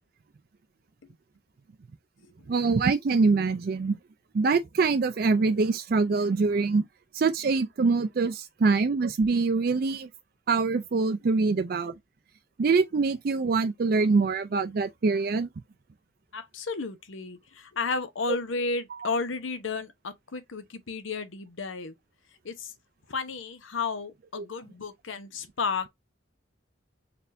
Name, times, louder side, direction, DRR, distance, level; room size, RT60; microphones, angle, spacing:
voice 1, 2.5-4.0 4.3-6.8 7.1-10.1 10.5-11.9 12.6-15.5 19.0-19.1 24.4-24.5, right 4 dB, 50° right, 0.4 m, -24 dB
voice 2, 16.3-21.9 22.4-22.7 23.1-25.9, left 4 dB, 85° left, 0.8 m, -33 dB
4.2 x 3.3 x 2.6 m
head